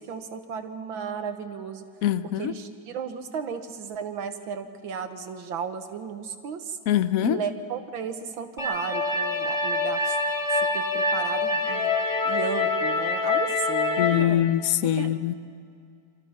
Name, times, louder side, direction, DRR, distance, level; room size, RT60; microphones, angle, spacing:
voice 1, 0.0-1.9 2.4-6.8 7.2-10.2 10.5-11.9 12.3-14.5 15.0-15.3, right 6 dB, 85° right, 7 dB, 2.0 m, -34 dB
voice 2, 2.0-2.5 6.9-7.4 14.0-15.3, left 11 dB, 60° left, 13 dB, 1.0 m, -23 dB
sound 1, 8.6-14.2, left 3 dB, 35° left, 2.7 m, -25 dB
29.5 x 25.5 x 5.7 m, 2.4 s
omnidirectional pair, 2.1 m